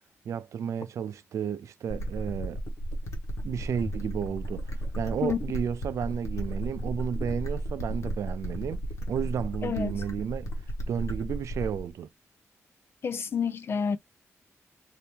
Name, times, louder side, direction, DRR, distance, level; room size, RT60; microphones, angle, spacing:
voice 1, 0.3-2.6 3.4-4.6 5.0-8.8 9.1-10.5 10.9-12.1, right 8 dB, 85° right, 0.4 m, -32 dB
sound 1, 1.9-11.9, right 1 dB, 75° left, 1.1 m, -34 dB
voice 2, 9.6-9.9 13.0-14.0, left 6 dB, 50° left, 0.4 m, -29 dB
2.8 x 2.7 x 3.4 m
wide cardioid pair, 120°, 5 cm